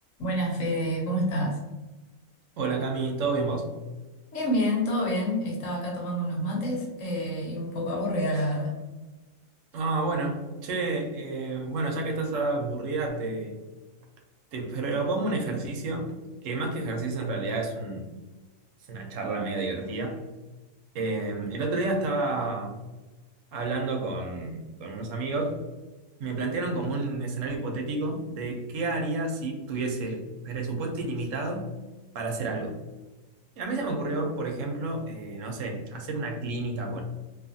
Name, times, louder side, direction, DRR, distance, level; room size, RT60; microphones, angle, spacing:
voice 1, 0.2-1.6 4.3-8.8, equal, 70° left, -2 dB, 1.1 m, -28 dB
voice 2, 2.6-3.7 9.7-13.6 14.5-16.1 16.4-18.1 18.9-20.2 20.9-22.8 23.5-25.6 26.2-31.7 32.1-32.8 33.6-37.0, right 3 dB, 75° right, 1 dB, 0.9 m, -30 dB
2.6 x 2.4 x 2.6 m, 1.2 s
omnidirectional pair, 1.4 m